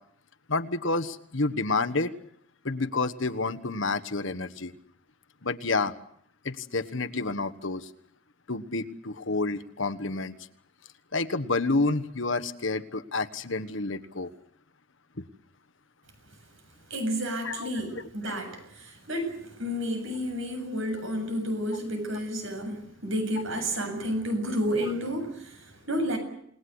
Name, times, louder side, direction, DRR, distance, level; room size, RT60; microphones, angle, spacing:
voice 1, 0.5-2.1 2.6-4.7 5.4-5.9 6.4-7.9 8.5-10.4 11.1-14.3 15.2-15.3 17.4-17.7, left 3 dB, 60° left, 9 dB, 1.4 m, -29 dB
voice 2, 16.9-26.2, equal, 65° right, 6 dB, 7.6 m, -31 dB
29.0 x 19.5 x 8.0 m, 0.68 s
head